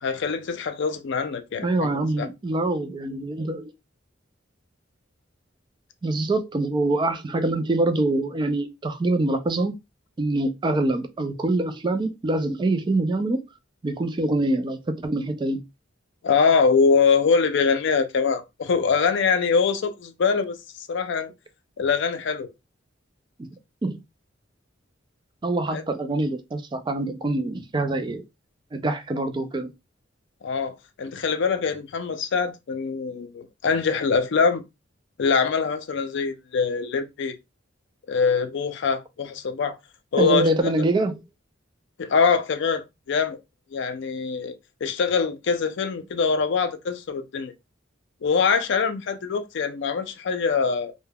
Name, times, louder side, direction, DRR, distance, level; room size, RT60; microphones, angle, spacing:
voice 1, 0.0-1.9 2.2-2.3 16.2-21.3 21.8-22.5 25.7-25.8 30.4-34.6 35.2-37.4 38.1-39.8 40.1-40.7 42.0-43.4 43.7-44.5 44.8-47.5 48.2-50.9, left 5 dB, 65° left, 0.4 m, -23 dB
voice 2, 1.6-3.7 6.0-9.7 10.2-13.4 13.8-15.6 23.4-23.5 23.8-24.0 25.4-28.2 28.7-29.7 40.2-41.2, right 2 dB, 25° right, 0.3 m, -25 dB
3.3 x 2.1 x 2.2 m
head